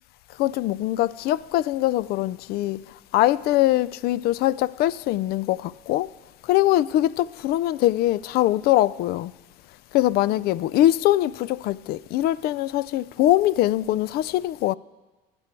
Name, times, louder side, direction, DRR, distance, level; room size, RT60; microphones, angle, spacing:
voice 1, 0.4-2.8 3.1-6.1 6.5-9.3 9.9-14.7, left 14 dB, 60° left, 0.4 m, -22 dB
20.5 x 7.0 x 4.5 m
supercardioid pair, 85°, 18 cm